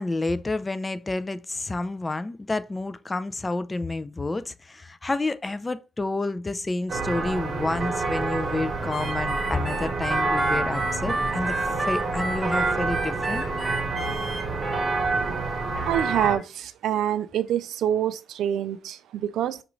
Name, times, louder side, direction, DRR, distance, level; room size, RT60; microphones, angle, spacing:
voice 1, 0.0-13.4, left 2 dB, 20° left, 0.4 m, -29 dB
sound 1, 6.9-16.4, right 3 dB, 40° right, 1.0 m, -28 dB
Harmonica, 8.9-14.4, right 2 dB, 5° left, 1.1 m, -31 dB
voice 2, 15.9-19.6, right 10 dB, 75° right, 0.4 m, -26 dB
5.9 x 2.5 x 3.1 m
cardioid pair, 90°, 0 cm